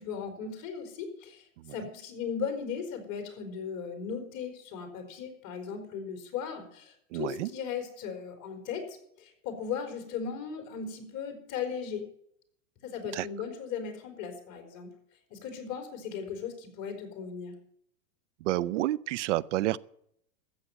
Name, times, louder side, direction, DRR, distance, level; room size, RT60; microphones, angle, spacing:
voice 1, 0.0-12.0 12.8-14.9 15.3-17.5, left 6 dB, 40° left, 4.2 m, -37 dB
voice 2, 7.1-7.5 13.1-13.3 18.4-19.8, right 15 dB, 50° right, 0.6 m, -29 dB
13.5 x 7.9 x 9.0 m
hypercardioid pair, 135°, 47 cm